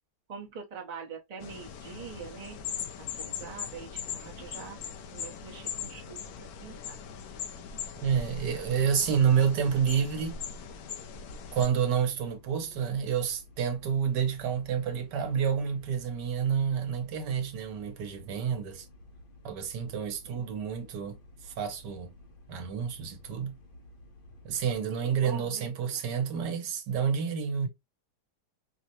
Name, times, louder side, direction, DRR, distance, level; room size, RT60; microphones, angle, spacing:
voice 1, 0.3-2.6 3.0-4.8 5.1-7.0 20.2-20.4 24.9-26.0, right 6 dB, 35° right, 0.7 m, -44 dB
sound 1, 1.4-11.7, left 7 dB, 70° left, 1.0 m, -40 dB
sound 2, 7.8-24.7, left 1 dB, 45° left, 0.8 m, -54 dB
voice 2, 8.0-10.4 11.5-18.8 19.4-21.2 21.4-22.1 22.5-23.6 24.4-27.7, right 7 dB, 80° right, 1.4 m, -29 dB
4.7 x 2.1 x 2.8 m
omnidirectional pair, 1.8 m